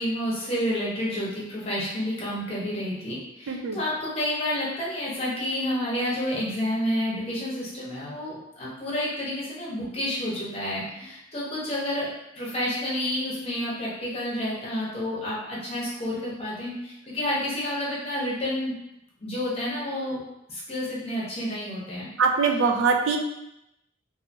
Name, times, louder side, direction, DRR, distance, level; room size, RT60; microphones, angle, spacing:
voice 1, 0.0-12.1 12.4-18.7 19.2-20.2 20.5-22.1, left 1 dB, 30° left, -7 dB, 0.9 m, -29 dB
voice 2, 3.5-3.8 22.2-23.2, right 5 dB, 80° right, 3 dB, 0.4 m, -22 dB
2.7 x 2.7 x 2.6 m, 0.84 s
head